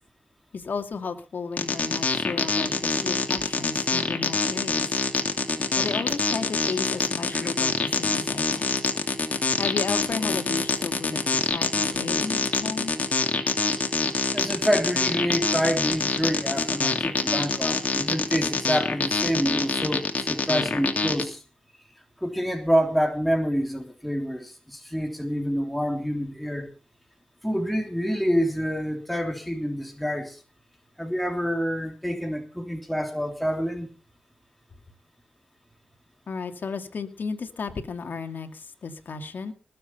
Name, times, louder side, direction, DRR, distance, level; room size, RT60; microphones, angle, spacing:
voice 1, 0.5-4.9 5.8-8.8 9.6-12.9 36.3-39.5, left 5 dB, 55° left, 6 dB, 2.5 m, -34 dB
sound 1, 1.6-21.2, left 3 dB, 40° left, 2.9 m, -25 dB
voice 2, 14.3-21.4 22.2-26.7 27.4-30.4 31.0-33.9, equal, ahead, 3 dB, 3.2 m, -27 dB
20.0 x 7.9 x 5.7 m, 0.36 s
cardioid pair, 65°, 4 cm